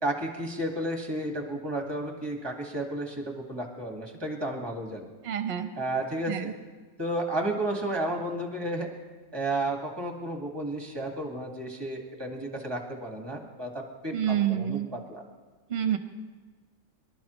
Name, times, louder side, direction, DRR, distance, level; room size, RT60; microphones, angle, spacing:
voice 1, 0.0-5.1 5.8-6.5 7.0-8.9 9.3-14.1 14.4-15.2, right 1 dB, 15° right, 2 dB, 1.7 m, -32 dB
voice 2, 5.2-5.7 6.3-6.5 14.1-14.9 15.7-16.0, right 10 dB, 50° right, 8 dB, 1.1 m, -27 dB
24.5 x 11.5 x 3.1 m, 1.4 s
omnidirectional pair, 1.5 m